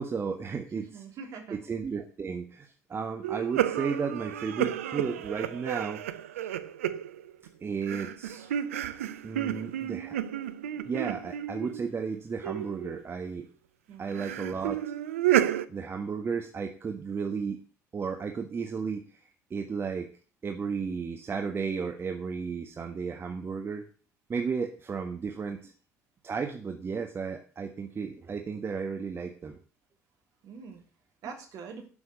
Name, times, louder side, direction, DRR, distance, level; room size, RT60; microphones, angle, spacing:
voice 1, 0.0-1.0 1.5-6.0 6.4-6.5 7.6-8.5 9.2-10.2 10.8-13.5 14.0-14.8 15.7-17.6 17.9-19.0 19.5-20.1 20.4-23.8 24.3-25.7 26.2-29.6, right 5 dB, 30° right, 4 dB, 1.5 m, -33 dB
voice 2, 0.7-1.6 13.9-14.1 30.4-30.8 31.2-31.9, right 5 dB, 50° right, 3 dB, 3.4 m, -43 dB
sound 1, 3.2-7.5 7.8-11.9 12.4-13.0 14.1-15.7, right 11 dB, 75° right, 0.6 m, -31 dB
12.5 x 6.2 x 8.2 m, 0.39 s
figure-of-eight pair, 55°, 7 cm